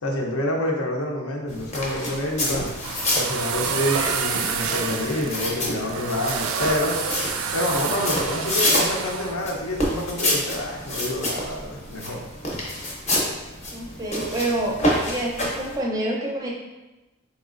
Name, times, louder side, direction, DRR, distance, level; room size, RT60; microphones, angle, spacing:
voice 1, 0.0-2.7 3.1-6.9 7.5-12.2, left 1 dB, 75° left, 0 dB, 0.7 m, -27 dB
sound 1, 1.5-15.8, left 1 dB, 30° left, 0.7 m, -28 dB
sound 2, 2.5-9.3, right 6 dB, 70° right, 0.4 m, -29 dB
voice 2, 13.7-16.5, right 1 dB, 15° right, -3 dB, 0.5 m, -27 dB
4.1 x 3.0 x 2.5 m, 1.1 s
head